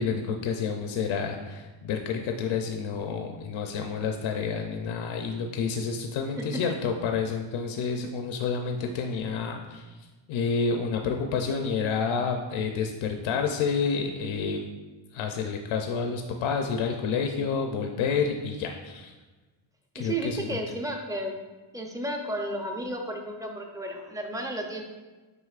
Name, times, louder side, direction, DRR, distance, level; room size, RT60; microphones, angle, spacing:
voice 1, 0.0-10.0 10.3-14.6 15.1-19.1 19.9-20.6, left 5 dB, 75° left, 3 dB, 0.6 m, -29 dB
voice 2, 6.4-6.7 20.0-21.4 21.7-24.8, right 1 dB, 5° right, 2 dB, 0.6 m, -33 dB
8.0 x 5.1 x 2.4 m, 1.3 s
cardioid pair, 145°, 47 cm